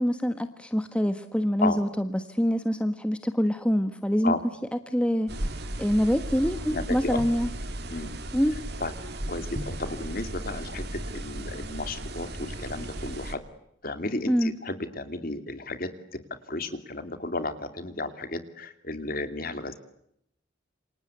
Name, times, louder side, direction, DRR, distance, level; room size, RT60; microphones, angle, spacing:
voice 1, 0.0-4.3 4.9-7.5 8.3-8.5 14.3-14.5, equal, 5° left, 9 dB, 1.3 m, -25 dB
sound 1, 5.3-13.3, right 1 dB, 55° right, 2.7 m, -35 dB
voice 2, 6.6-7.2 7.9-8.1 8.8-8.9 9.3-13.4 13.8-16.2 16.5-19.7, left 2 dB, 45° left, 9 dB, 2.7 m, -33 dB
28.5 x 25.5 x 8.2 m, 0.76 s
head